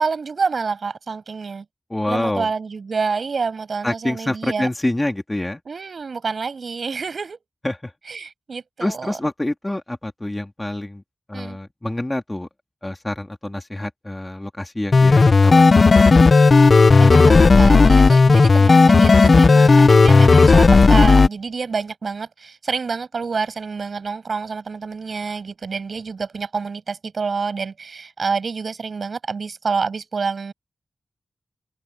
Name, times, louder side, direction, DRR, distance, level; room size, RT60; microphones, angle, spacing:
voice 1, 0.0-1.6 2.1-4.7 5.7-7.4 8.1-9.2 11.3-11.6 17.0-30.5, right 5 dB, 55° right, 7.6 m, -27 dB
voice 2, 1.9-2.5 3.8-5.6 7.6-7.9 8.8-11.0 11.3-12.5 12.8-15.8, left 1 dB, 15° left, 2.4 m, -26 dB
sound 1, 14.9-21.3, left 4 dB, 40° left, 0.7 m, -12 dB
wide cardioid pair, 140°, 0 cm